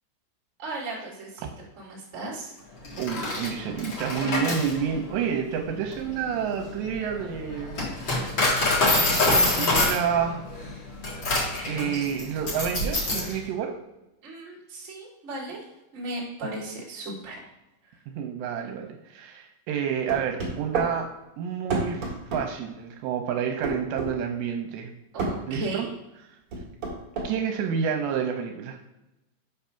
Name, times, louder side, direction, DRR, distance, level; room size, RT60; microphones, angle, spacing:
voice 1, 0.6-1.5 1.8-2.5 14.2-15.6 15.9-17.4 25.1-25.9, right 2 dB, 30° right, -4 dB, 1.4 m, -36 dB
Coin (dropping), 2.8-13.3, left 2 dB, 65° left, 1.1 m, -26 dB
voice 2, 3.0-7.8 8.9-10.4 11.7-13.7 18.1-21.1 21.4-22.0 22.3-24.9 25.5-25.9 27.2-28.8, right 7 dB, 80° right, 3 dB, 2.8 m, -29 dB
sound 1, 20.1-20.9 21.7-22.5 23.6-24.1 25.2-25.4 26.5-27.3, right 3 dB, 55° right, 1.6 m, -28 dB
8.0 x 3.6 x 5.7 m, 0.94 s
omnidirectional pair, 5.3 m